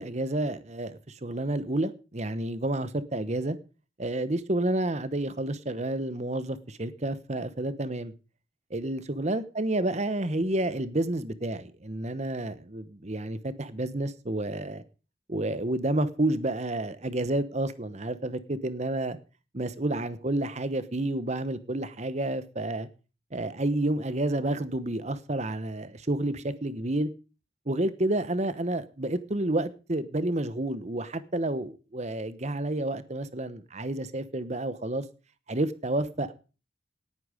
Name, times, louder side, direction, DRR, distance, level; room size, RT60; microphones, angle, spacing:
voice 1, 0.0-3.6 4.0-8.1 8.7-14.8 15.3-19.2 19.5-22.9 23.3-27.1 27.7-35.0 35.5-36.3, right 1 dB, 35° right, 1.0 m, -30 dB
18.5 x 9.0 x 5.0 m
head